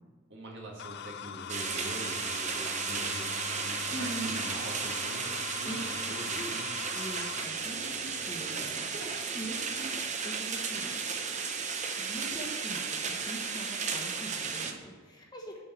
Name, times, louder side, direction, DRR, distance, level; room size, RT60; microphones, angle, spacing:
voice 1, 0.3-6.7 8.5-8.7 8.9-9.1, right 1 dB, 55° right, -2 dB, 1.9 m, -44 dB
sound 1, 0.8-7.4, left 9 dB, 50° left, 0.3 m, -42 dB
sound 2, 1.5-14.7, right 5 dB, 35° right, 0.7 m, -34 dB
sound 3, 2.9-10.6, left 3 dB, 75° left, 0.8 m, -52 dB
voice 2, 3.9-4.4 5.6-5.8 6.3-6.5 6.9-8.7 9.3-9.9 10.2-11.0 12.0-15.6, right 1 dB, 20° left, -1 dB, 1.1 m, -42 dB
6.7 x 5.5 x 7.2 m, 1.4 s
head